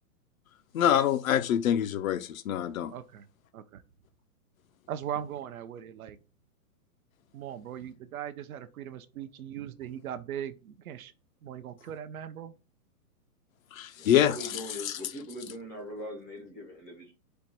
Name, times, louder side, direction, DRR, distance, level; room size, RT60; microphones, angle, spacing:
voice 1, 0.7-2.9 13.7-14.5 14.8-15.0, left 10 dB, 60° left, 0.5 m, -25 dB
voice 2, 2.9-3.2 3.5-3.8 4.9-6.2 7.3-11.1 11.4-12.5, right 10 dB, 65° right, 0.6 m, -39 dB
voice 3, 14.0-17.1, left 1 dB, 10° left, 0.4 m, -41 dB
4.5 x 2.2 x 4.1 m
hypercardioid pair, 150°, 46 cm